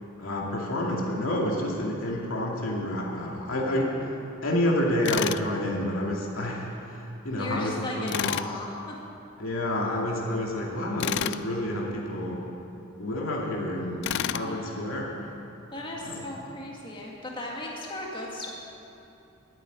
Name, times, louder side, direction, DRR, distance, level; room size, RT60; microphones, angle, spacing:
voice 1, 0.2-8.3 9.4-12.5 13.0-15.3 16.0-16.2, left 1 dB, 85° left, -2 dB, 2.5 m, -29 dB
Tools, 5.1-5.5 8.1-8.5 11.0-11.4 14.0-14.5, left 10 dB, 60° left, 0.3 m, -29 dB
voice 2, 7.4-9.0 14.3-14.8 15.7-18.5, left 1 dB, 25° left, -3 dB, 2.0 m, -36 dB
12.5 x 9.1 x 9.4 m, 2.9 s
head